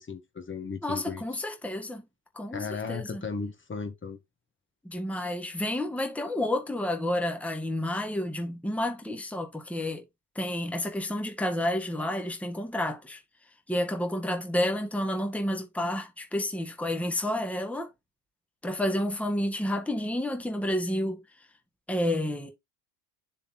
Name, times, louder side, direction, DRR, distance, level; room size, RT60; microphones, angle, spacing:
voice 1, 0.0-1.2 2.5-4.2, left 5 dB, 25° left, 1.9 m, -36 dB
voice 2, 0.8-2.1 2.3-3.2 4.8-10.0 10.4-13.2 13.7-17.9 18.6-21.2 21.9-22.5, left 1 dB, 5° left, 1.7 m, -30 dB
6.9 x 4.3 x 4.3 m
supercardioid pair, 95°, 48 cm